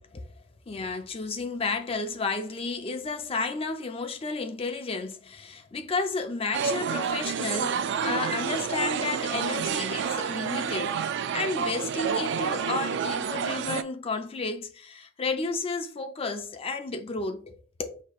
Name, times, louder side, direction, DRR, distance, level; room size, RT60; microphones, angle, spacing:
voice 1, 0.7-11.0 11.3-18.0, left 3 dB, 30° left, 0.4 m, -32 dB
sound 1, 6.5-13.8, right 7 dB, 60° right, 0.3 m, -29 dB
6.0 x 2.9 x 2.4 m
head